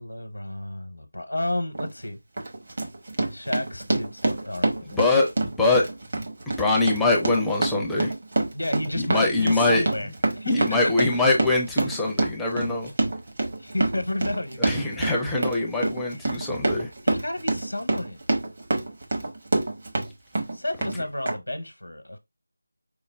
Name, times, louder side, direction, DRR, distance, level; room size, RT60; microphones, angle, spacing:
voice 1, 0.0-2.2 3.3-5.0 8.5-10.1 10.3-11.3 13.6-15.1 17.0-18.2 20.5-22.2, left 1 dB, 75° left, 0.8 m, -31 dB
Run, 1.7-1.9 2.4-20.1 20.4-21.0 21.3-21.4, right 2 dB, 40° right, 0.9 m, -27 dB
voice 2, 4.9-5.3 5.6-5.9 6.6-8.1 9.0-9.8 10.5-12.9 14.6-16.9, left 2 dB, ahead, 0.5 m, -23 dB
4.9 x 2.0 x 3.3 m
figure-of-eight pair, 165°, 0 cm